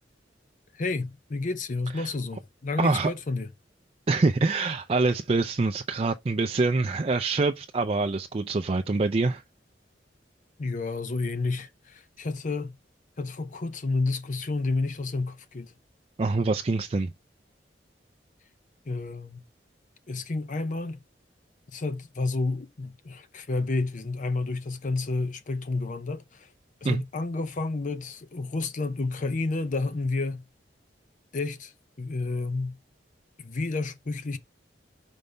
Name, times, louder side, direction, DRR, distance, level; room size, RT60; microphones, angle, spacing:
voice 1, 0.7-3.5 10.6-12.8 13.2-15.7 18.9-19.4 20.1-21.0 21.7-26.5 26.8-30.5 31.3-31.7 32.0-32.8 33.4-34.4, left 3 dB, 45° left, 0.6 m, -30 dB
voice 2, 2.8-3.1 4.1-9.4 16.2-17.1 26.8-27.0, right 3 dB, 35° right, 0.4 m, -25 dB
5.4 x 5.3 x 3.3 m
head